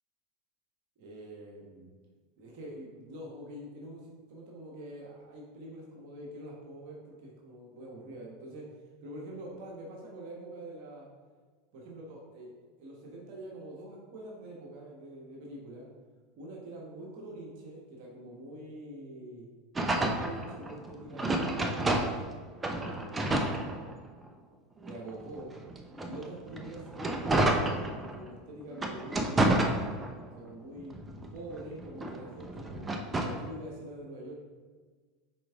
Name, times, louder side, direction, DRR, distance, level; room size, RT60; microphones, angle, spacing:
voice 1, 1.0-1.9 2.3-11.1 11.7-12.5 12.8-15.9 16.3-19.5 19.9-22.0 22.7-23.8 24.8-25.6 26.0-29.7 30.3-31.0 31.3-34.4, right 1 dB, 60° right, -2 dB, 1.3 m, -45 dB
sound 1, 19.8-22.3 22.6-24.3 24.8-28.3 28.7-30.4 30.8-33.5, right 2 dB, 20° right, 0.7 m, -30 dB
6.1 x 4.6 x 3.6 m, 1.5 s
hypercardioid pair, 85°, 0 cm